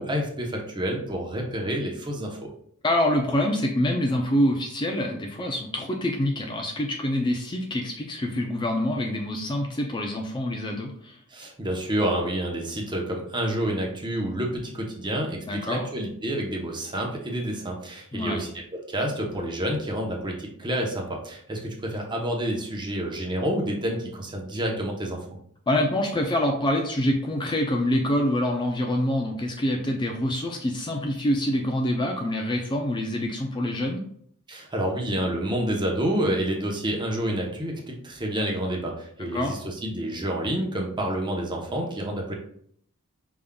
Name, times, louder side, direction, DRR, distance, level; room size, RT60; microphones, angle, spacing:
voice 1, 0.0-2.4 11.3-18.6 18.9-25.2 34.5-42.3, right 1 dB, 20° right, 0 dB, 0.8 m, -28 dB
voice 2, 2.8-11.2 15.5-15.8 18.1-18.4 25.7-34.0 39.3-39.6, left 1 dB, 20° left, 2 dB, 0.4 m, -26 dB
5.2 x 3.6 x 2.3 m, 0.64 s
head